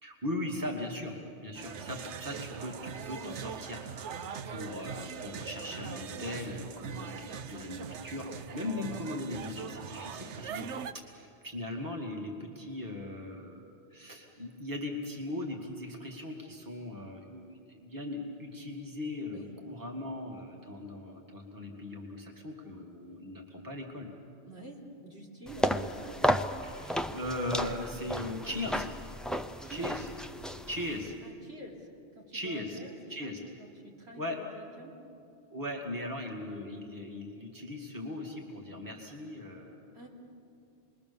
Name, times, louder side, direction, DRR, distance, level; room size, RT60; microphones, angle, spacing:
voice 1, 0.0-1.2 1.4-3.8 4.1-10.7 10.9-13.6 13.9-24.1 26.6-28.9 29.7-30.1 30.7-31.1 32.3-32.8 33.1-33.4 34.2-34.4 35.5-39.8, left 1 dB, 15° right, -1 dB, 2.3 m, -39 dB
sound 1, 1.5-10.9, right 7 dB, 80° right, 1.1 m, -41 dB
voice 2, 4.1-4.5 19.3-19.5 20.5-20.7 24.5-26.4 29.6-29.9 31.2-31.9 32.2-32.9 33.2-33.3 33.6-35.0 39.9-40.1, right 1 dB, 65° right, -3 dB, 3.6 m, -48 dB
sound 2, 25.5-31.1, equal, ahead, 0.4 m, -33 dB
27.5 x 21.5 x 7.0 m, 2.6 s
omnidirectional pair, 1.2 m